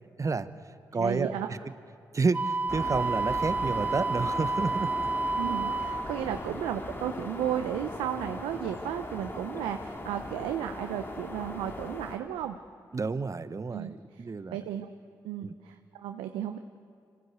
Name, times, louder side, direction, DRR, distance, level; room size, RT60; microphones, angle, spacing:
voice 1, 0.2-0.5 0.9-1.6 2.1-4.9 12.9-14.6 15.4-15.5, right 4 dB, 40° right, 13 dB, 1.1 m, -30 dB
voice 2, 0.9-1.5 5.3-12.6 13.7-14.2 14.5-14.9 15.2-16.6, right 10 dB, 90° right, 7 dB, 0.7 m, -34 dB
Wind instrument woodwind instrument, 2.3-6.1, right 3 dB, 20° right, 0.7 m, -30 dB
sound 1, 2.7-12.2, left 1 dB, 25° left, 2.4 m, -39 dB
25.5 x 15.5 x 8.2 m, 2.3 s
supercardioid pair, 45°, 8 cm